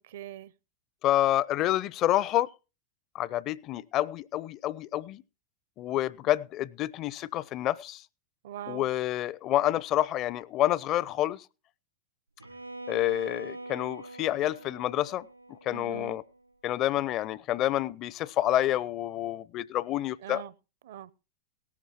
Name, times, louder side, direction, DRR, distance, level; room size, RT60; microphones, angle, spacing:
voice 1, 0.1-0.5 8.4-8.9 15.7-16.2 20.2-20.5 20.8-21.1, right 10 dB, 55° right, 0.7 m, -41 dB
voice 2, 1.0-2.5 3.1-5.2 5.8-8.0 8.7-11.4 12.9-15.3 15.7-16.2 16.6-20.4, left 13 dB, 35° left, 0.5 m, -28 dB
Bowed string instrument, 12.4-16.4, right 2 dB, 85° right, 4.3 m, -44 dB
18.0 x 13.0 x 2.9 m
figure-of-eight pair, 90°, 0 cm